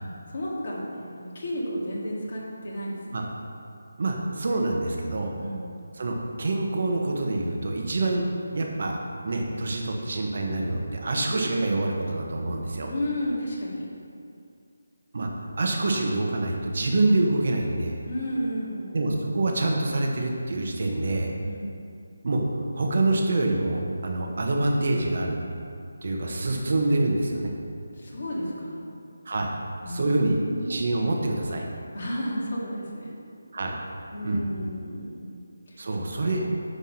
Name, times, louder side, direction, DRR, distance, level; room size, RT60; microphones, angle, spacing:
voice 1, 0.0-3.2 5.4-5.7 11.3-11.4 12.9-13.8 18.0-19.0 21.4-21.7 28.0-28.9 29.8-30.9 31.9-33.1 34.1-35.4 36.2-36.4, equal, 45° left, -5 dB, 2.0 m, -32 dB
voice 2, 4.0-5.3 5.9-9.0 9.2-12.9 15.1-15.3 15.6-18.0 18.9-21.3 22.2-25.4 26.0-27.5 29.2-29.5 29.9-31.6 33.5-33.8 34.2-34.5 35.8-36.4, right 2 dB, 50° right, 1 dB, 1.2 m, -26 dB
10.0 x 3.5 x 5.6 m, 2.4 s
figure-of-eight pair, 170°, 0 cm